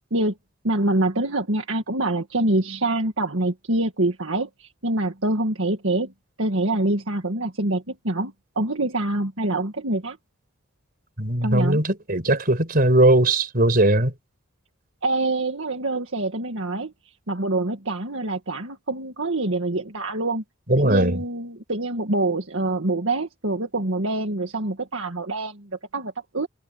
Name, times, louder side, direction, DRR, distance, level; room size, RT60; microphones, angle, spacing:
voice 1, 0.6-6.1 6.4-10.2 11.4-11.8 15.0-16.9 17.3-20.4 20.8-26.5, right 2 dB, 65° right, 2.0 m, -25 dB
voice 2, 11.2-14.1 20.7-21.2, right 1 dB, 45° right, 5.0 m, -19 dB
head